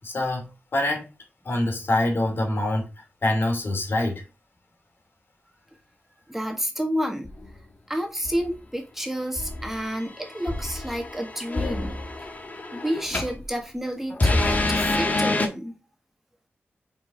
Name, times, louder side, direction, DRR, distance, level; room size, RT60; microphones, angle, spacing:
voice 1, 0.0-1.1 1.4-4.2, left 1 dB, 65° left, 2.8 m, -25 dB
voice 2, 6.3-7.3 7.9-12.1 12.7-15.8, equal, 5° right, 1.7 m, -30 dB
sound 1, 7.2-7.6 8.2-8.6 9.4-13.4 14.1-15.5, left 2 dB, 40° left, 1.6 m, -27 dB
6.0 x 4.9 x 5.0 m
wide cardioid pair, 80°, 4 cm